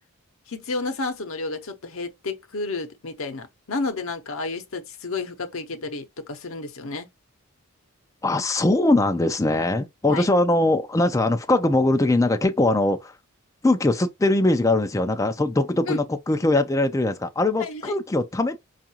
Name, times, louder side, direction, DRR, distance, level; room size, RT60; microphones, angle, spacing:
voice 1, 0.5-7.1 10.1-10.3 15.9-16.0 17.6-17.9, left 3 dB, 65° left, 0.8 m, -31 dB
voice 2, 8.2-13.1 13.6-18.6, left 2 dB, 15° left, 0.3 m, -21 dB
4.6 x 2.4 x 2.8 m
head